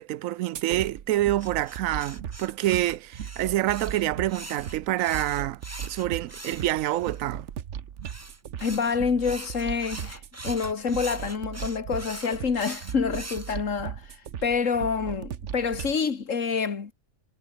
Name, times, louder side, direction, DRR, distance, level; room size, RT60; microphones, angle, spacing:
voice 1, 0.0-5.6 5.9-7.5, right 14 dB, 80° right, 1.0 m, -27 dB
sound 1, 0.5-16.0, right 9 dB, 65° right, 1.2 m, -38 dB
sound 2, 1.4-7.2 8.0-13.6, right 1 dB, 10° right, 1.4 m, -42 dB
voice 2, 8.6-16.9, left 5 dB, 70° left, 2.2 m, -27 dB
omnidirectional pair, 1.4 m